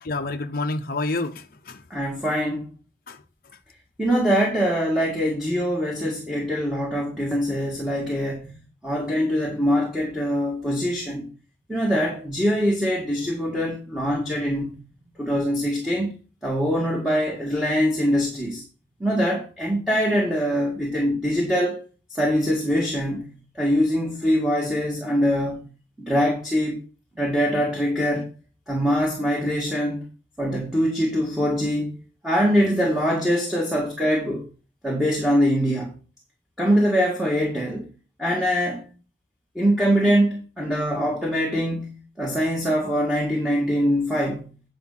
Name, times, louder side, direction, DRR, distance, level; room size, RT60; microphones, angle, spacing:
voice 1, 0.0-1.8 3.1-3.2, left 2 dB, 50° left, 0.7 m, -28 dB
voice 2, 1.9-2.7 4.0-8.6 8.8-11.3 11.7-14.8 15.2-16.1 16.4-18.6 19.0-21.8 22.1-25.6 26.0-26.8 27.2-28.3 28.7-30.1 30.4-32.0 32.2-34.4 34.8-35.9 36.6-37.9 38.2-38.8 39.6-44.6, equal, ahead, 1.7 m, -23 dB
9.2 x 5.2 x 5.6 m
head